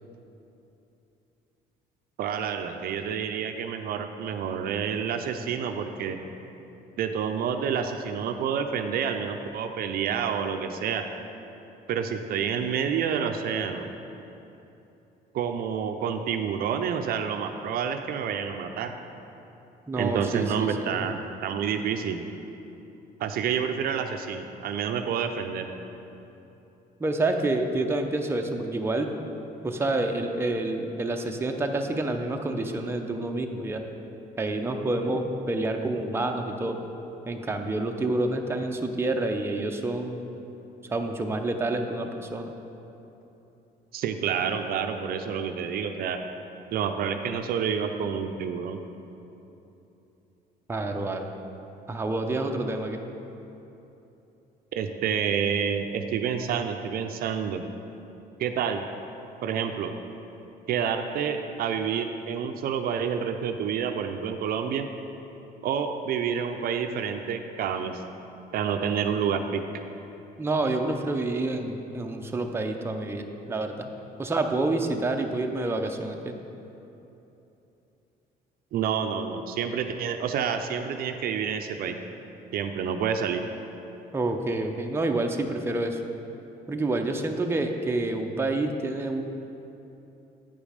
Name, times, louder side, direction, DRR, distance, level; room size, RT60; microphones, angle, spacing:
voice 1, 2.2-6.2 7.0-11.0 11.9-13.9 15.3-18.9 20.0-22.3 23.2-25.7 43.9-46.2 46.7-48.8 54.7-57.6 58.4-58.8 59.4-59.9 60.7-64.9 65.6-68.0 68.5-69.7 78.7-82.0 82.5-83.4, right 7 dB, 65° right, 6 dB, 0.5 m, -28 dB
voice 2, 19.9-21.0 27.0-29.1 29.6-33.8 34.4-36.8 37.3-40.2 40.9-42.5 50.7-51.3 51.9-53.0 70.4-73.9 74.2-76.3 84.1-86.0 86.7-89.2, right 2 dB, 15° right, 3 dB, 0.6 m, -28 dB
8.9 x 5.1 x 5.0 m, 3.0 s
cardioid pair, 110°, 17 cm